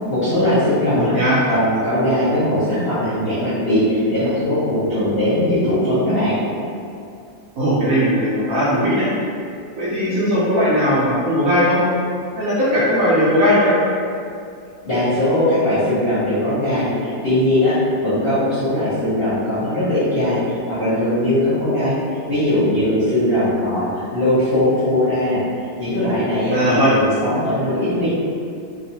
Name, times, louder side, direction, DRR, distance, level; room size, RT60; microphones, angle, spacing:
voice 1, 0.1-1.2 1.5-6.4 14.8-21.9 22.3-25.4 25.8-28.1, left 1 dB, 50° left, -13 dB, 0.7 m, -19 dB
voice 2, 0.9-1.4 7.6-9.1 9.8-11.8 12.4-13.7 26.5-26.9, equal, 70° right, -9 dB, 0.9 m, -18 dB
3.0 x 2.0 x 2.7 m, 2.4 s
omnidirectional pair, 1.8 m